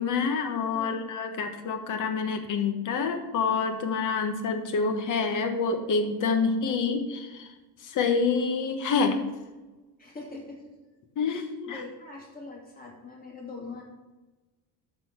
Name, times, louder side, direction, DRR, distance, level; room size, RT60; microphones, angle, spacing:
voice 1, 0.0-7.5 7.8-9.2 11.2-11.8, left 5 dB, 40° left, 6 dB, 1.2 m, -27 dB
voice 2, 0.7-1.1 6.4-7.0 10.0-10.7 11.2-13.8, left 3 dB, 20° left, -2 dB, 2.6 m, -43 dB
12.5 x 4.3 x 5.7 m, 1.1 s
cardioid pair, 165°, 46 cm